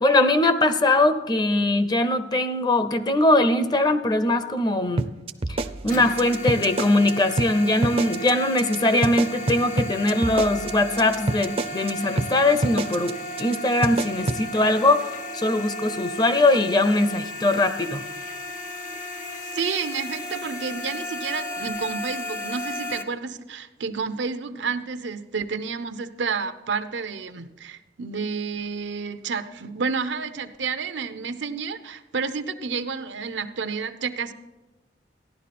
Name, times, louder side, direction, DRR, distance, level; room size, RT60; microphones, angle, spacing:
voice 1, 0.0-5.1 5.5-18.1, left 2 dB, 25° left, 11 dB, 0.6 m, -21 dB
sound 1, 5.0-7.1 7.4-7.5 7.8-8.3 8.6-8.8 9.0-11.9 12.2-12.3 12.6-13.1 13.4-13.6 13.8-14.4, right 2 dB, 35° right, 0.5 m, -26 dB
sound 2, 5.9-23.0, left 1 dB, 45° left, 0.9 m, -35 dB
voice 2, 19.5-34.3, right 5 dB, 85° right, 11 dB, 0.7 m, -30 dB
14.5 x 11.0 x 4.2 m, 1.1 s
head